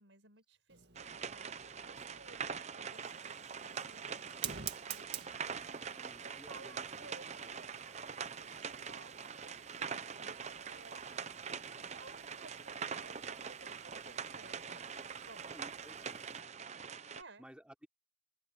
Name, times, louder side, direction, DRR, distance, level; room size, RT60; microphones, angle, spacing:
voice 1, 0.0-11.1 11.5-15.0 15.2-15.5 17.1-17.4, right 3 dB, 80° right, 5.8 m, -58 dB
Fire, 0.7-16.4, right 9 dB, 60° right, 2.0 m, -52 dB
sound 1, 1.0-17.2, right 6 dB, 35° right, 0.7 m, -44 dB
voice 2, 5.5-7.1 7.8-8.1 15.4-16.5 16.9-17.9, equal, 5° right, 3.1 m, -58 dB
open air
head